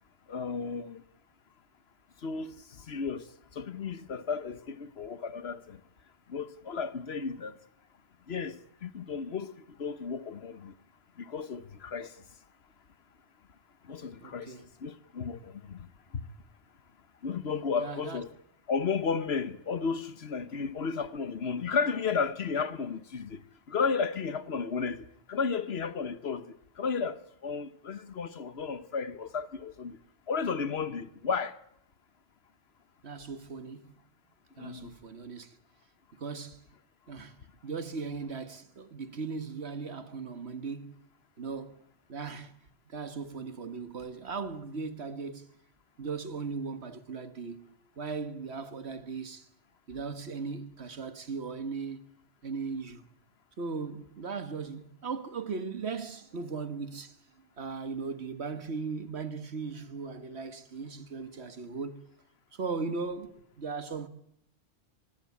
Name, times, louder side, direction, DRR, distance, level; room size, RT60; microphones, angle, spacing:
voice 1, 0.3-1.0 2.2-5.8 6.3-7.6 8.3-10.7 11.2-12.1 13.8-14.6 14.8-16.2 17.2-18.3 18.7-23.4 23.7-30.0 30.3-31.6 34.6-34.9, left 5 dB, 65° left, 1.3 m, -33 dB
voice 2, 14.2-14.7 17.8-18.2 33.0-33.9 34.6-35.6 36.2-36.7 37.1-37.3 37.6-41.1 41.4-41.8 42.1-42.5 42.9-45.5 46.0-47.7 48.0-49.5 49.9-52.0 52.4-53.1 53.6-57.2 57.6-62.1 62.5-64.1, right 4 dB, 70° right, 1.8 m, -38 dB
24.0 x 19.5 x 8.5 m
omnidirectional pair, 1.1 m